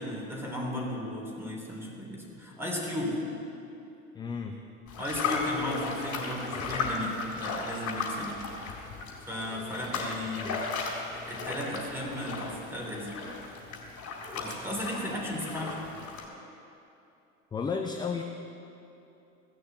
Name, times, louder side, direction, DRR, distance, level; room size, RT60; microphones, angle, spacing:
voice 1, 0.0-3.2 5.0-8.4 9.3-10.5 11.3-13.2 14.3-15.8, left 1 dB, 5° right, -2 dB, 3.5 m, -35 dB
voice 2, 4.1-4.5 10.4-10.6 17.5-18.2, left 5 dB, 10° left, 4 dB, 0.5 m, -33 dB
sound 1, 4.9-16.3, left 4 dB, 40° left, 3.9 m, -36 dB
16.5 x 6.6 x 7.8 m, 2.8 s
figure-of-eight pair, 75°, 44 cm